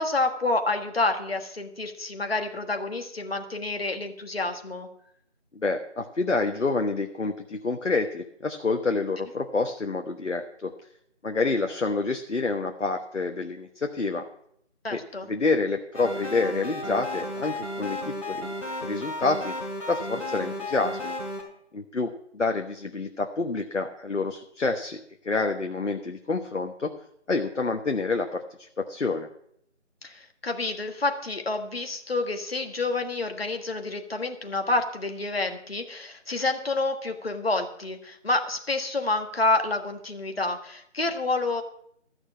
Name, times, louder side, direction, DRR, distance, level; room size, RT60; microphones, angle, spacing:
voice 1, 0.0-4.9 14.8-15.3 30.0-41.6, left 2 dB, 55° left, 5 dB, 1.5 m, -28 dB
voice 2, 5.6-10.7 11.2-14.2 14.9-15.0 15.3-18.5 18.8-19.5 19.9-21.1 21.7-26.9 27.3-29.3, left 3 dB, 75° left, 4 dB, 1.2 m, -28 dB
sound 1, 15.9-21.4, left 1 dB, 25° left, 3.2 m, -33 dB
14.0 x 6.4 x 7.3 m, 0.70 s
figure-of-eight pair, 170°, 37 cm